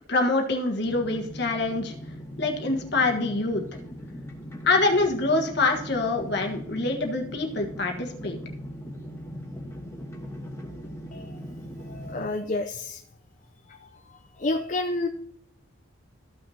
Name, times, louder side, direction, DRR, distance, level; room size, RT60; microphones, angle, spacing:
voice 1, 0.1-1.9 2.4-3.6 4.6-8.4, left 3 dB, 55° left, 2 dB, 1.4 m, -25 dB
sound 1, 0.8-12.3, equal, 15° left, 1.3 m, -40 dB
voice 2, 11.9-13.0 13.7-15.1, left 2 dB, 40° left, 4 dB, 0.5 m, -30 dB
14.0 x 6.0 x 2.8 m, 0.70 s
head